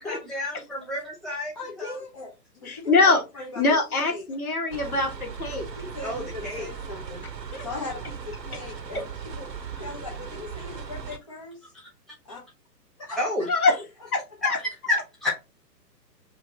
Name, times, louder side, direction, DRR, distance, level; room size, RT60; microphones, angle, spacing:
voice 1, 0.0-2.0 6.0-6.7 11.7-11.9 13.2-13.6 14.4-15.3, left 2 dB, ahead, -6 dB, 1.3 m, -30 dB
voice 2, 1.5-4.2 5.5-7.3 7.6-9.5 9.8-11.7 12.2-12.4 13.0-13.2, left 3 dB, 20° left, -2 dB, 0.6 m, -39 dB
voice 3, 2.7-3.2 3.6-5.6 7.5-7.6 8.9-9.0 13.5-13.7 14.1-14.2 14.5-14.6, left 3 dB, 60° left, 2 dB, 1.8 m, -23 dB
sound 1, 4.7-11.2, right 6 dB, 85° right, 0.9 m, -38 dB
5.1 x 2.6 x 4.0 m, 0.26 s
figure-of-eight pair, 130°, 50 cm